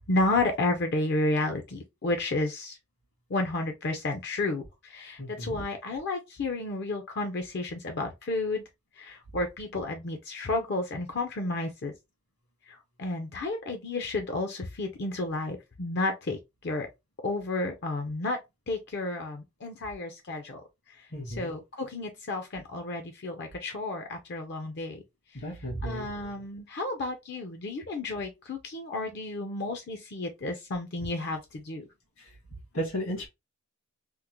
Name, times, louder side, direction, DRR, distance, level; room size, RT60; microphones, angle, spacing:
voice 1, 0.0-2.8 3.3-8.6 9.0-11.9 12.7-16.9 17.2-18.4 18.7-20.6 21.0-25.0 25.8-31.8, left 2 dB, 50° left, 0.5 m, -32 dB
voice 2, 5.2-5.6 21.1-21.5 25.4-26.1 32.7-33.3, equal, 75° left, 1.7 m, -34 dB
3.6 x 2.0 x 2.9 m
head